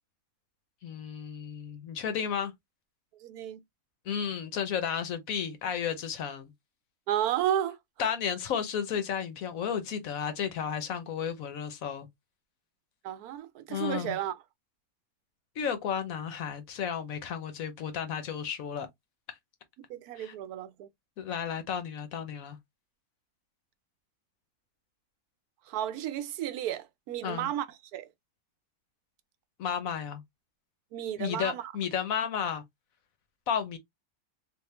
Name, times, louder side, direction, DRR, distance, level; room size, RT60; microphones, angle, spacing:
voice 1, 0.8-2.5 4.1-6.5 8.0-12.1 13.7-14.2 15.6-18.9 20.2-20.3 21.2-22.6 27.2-27.5 29.6-30.2 31.2-32.6 33.5-33.8, left 8 dB, 70° left, 1.1 m, -33 dB
voice 2, 3.2-3.6 7.1-7.8 13.0-14.3 19.9-20.9 25.7-27.7 27.9-28.1 30.9-31.7, right 11 dB, 80° right, 1.1 m, -32 dB
3.5 x 2.4 x 3.3 m
omnidirectional pair, 1.6 m